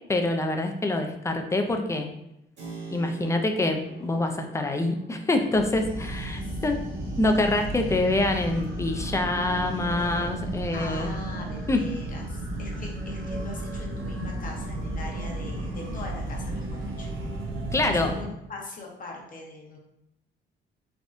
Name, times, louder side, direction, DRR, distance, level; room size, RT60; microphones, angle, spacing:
voice 1, 0.1-2.1 2.9-6.8 7.2-11.1 11.7-11.8 17.7-18.1, left 2 dB, 15° left, 4 dB, 0.4 m, -25 dB
Keyboard (musical), 2.6-11.1, right 3 dB, 60° right, 1.4 m, -48 dB
sound 1, 5.5-18.2, right 1 dB, 75° right, 0.7 m, -33 dB
voice 2, 6.4-6.9 10.7-17.1 17.8-19.8, left 2 dB, 45° left, -1 dB, 0.8 m, -41 dB
3.4 x 2.2 x 2.6 m, 0.83 s
cardioid pair, 90°, 20 cm